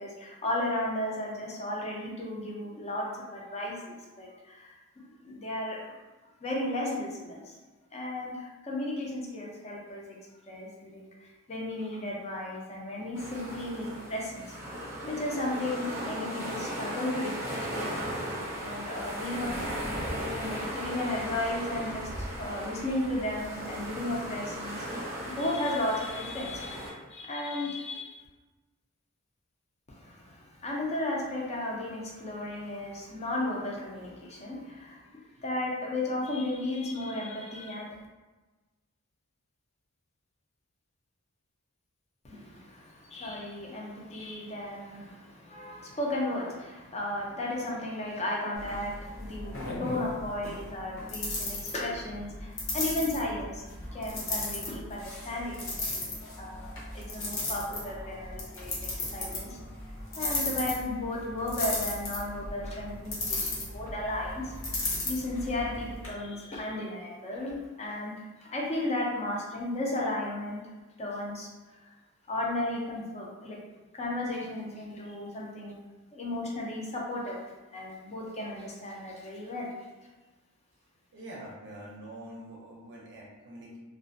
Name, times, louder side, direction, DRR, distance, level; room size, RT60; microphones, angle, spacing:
voice 1, 0.0-5.8 6.4-7.6 7.9-10.2 10.5-11.0 11.5-14.5 15.0-17.9 18.6-19.5 20.0-28.2 29.9-35.0 35.4-37.9 42.2-53.6 53.9-55.6 56.4-59.6 60.2-64.5 65.0-70.7 71.0-71.9 72.3-73.6 73.9-75.8 76.1-77.4 77.7-79.7, left 1 dB, 30° left, -2 dB, 0.5 m, -34 dB
sound 1, 13.1-26.9, equal, 15° right, 0.6 m, -36 dB
sound 2, 48.5-66.1, left 2 dB, 65° left, 0.8 m, -36 dB
voice 2, 81.1-83.8, right 1 dB, 55° right, -3 dB, 0.5 m, -45 dB
2.4 x 2.1 x 2.5 m, 1.2 s
head